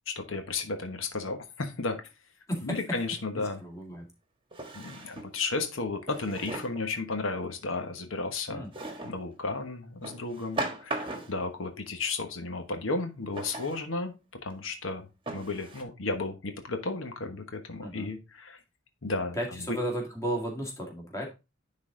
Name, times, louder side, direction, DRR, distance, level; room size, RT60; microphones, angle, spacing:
voice 1, 0.1-2.0 2.6-3.6 4.7-8.7 9.0-14.1 14.4-18.6 19.0-19.4 19.7-19.8, left 3 dB, 85° left, 6 dB, 1.2 m, -33 dB
voice 2, 2.5-3.0 3.4-4.1 8.5-8.7 17.8-18.1 19.3-21.3, equal, 15° left, -1 dB, 2.2 m, -34 dB
Drawer open or close, 3.2-3.3 4.5-5.4 6.1-6.9 8.7-9.2 10.0-11.5 13.3-13.8 14.5-14.6 15.3-15.8, right 2 dB, 25° right, 1.3 m, -37 dB
10.0 x 4.0 x 3.8 m, 0.27 s
head